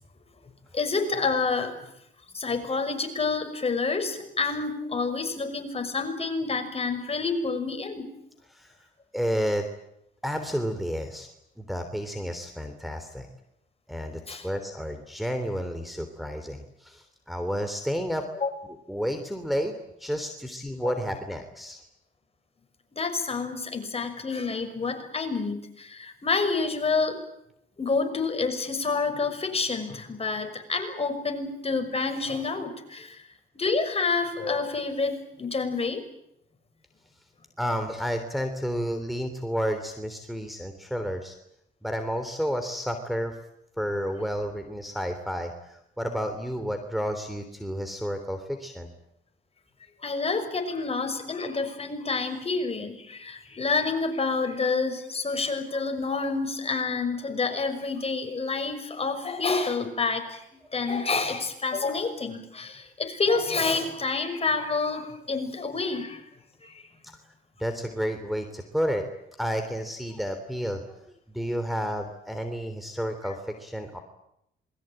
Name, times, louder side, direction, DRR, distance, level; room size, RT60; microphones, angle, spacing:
voice 1, 0.7-1.8 2.3-8.1 14.3-14.5 18.4-18.5 20.8-20.9 23.0-27.2 27.8-33.2 33.5-36.0 50.0-60.4 60.7-66.2 66.6-66.8, left 4 dB, 30° left, 6 dB, 6.1 m, -28 dB
voice 2, 9.1-9.6 10.2-11.3 11.6-13.3 13.9-18.2 18.9-19.7 20.0-21.8 37.6-41.4 41.8-43.4 43.8-48.9 60.6-60.7 67.2-67.3 67.6-69.0 69.4-71.0 71.3-74.0, equal, ahead, 5 dB, 3.3 m, -31 dB
27.5 x 22.0 x 9.0 m, 0.79 s
cardioid pair, 90°, 20 cm